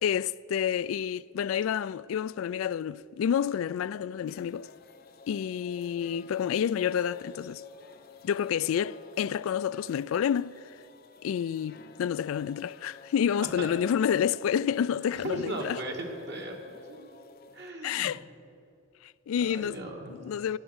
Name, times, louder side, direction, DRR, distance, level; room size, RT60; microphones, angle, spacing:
voice 1, 0.0-4.7 5.3-7.6 8.2-10.5 11.2-15.8 17.8-18.2 19.0-19.8 20.1-20.6, left 8 dB, 80° left, 0.3 m, -29 dB
sound 1, 4.3-17.7, left 5 dB, 50° left, 0.6 m, -52 dB
voice 2, 13.4-13.7 15.2-16.6 16.9-17.0 17.5-18.2 19.4-20.1, right 1 dB, 55° right, 2.0 m, -37 dB
14.5 x 10.0 x 8.0 m
head